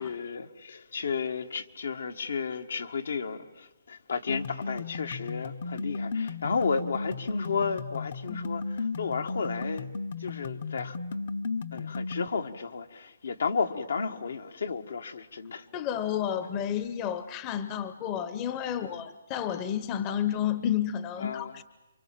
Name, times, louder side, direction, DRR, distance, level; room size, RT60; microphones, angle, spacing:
voice 1, 0.0-9.9 10.2-11.0 11.7-15.7 18.7-18.9 21.2-21.6, left 5 dB, 75° left, 1.7 m, -33 dB
sound 1, 4.3-12.3, left 4 dB, 50° left, 1.0 m, -35 dB
voice 2, 15.7-21.6, left 10 dB, 25° left, 0.9 m, -31 dB
28.5 x 24.5 x 7.6 m
hypercardioid pair, 160°, 0 cm